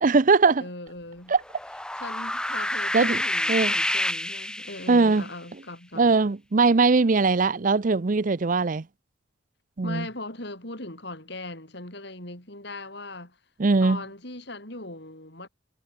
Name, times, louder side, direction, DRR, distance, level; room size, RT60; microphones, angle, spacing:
voice 1, 0.0-0.6 1.3-1.4 2.9-3.2 3.5-3.7 4.9-5.2 6.0-8.8 9.8-10.1 13.6-14.0, right 4 dB, 40° right, 0.6 m, -20 dB
voice 2, 0.6-1.3 2.0-6.1 9.8-13.4 13.8-15.5, left 2 dB, 60° left, 7.2 m, -39 dB
sound 1, 1.4-5.2, left 1 dB, 5° left, 1.3 m, -28 dB
head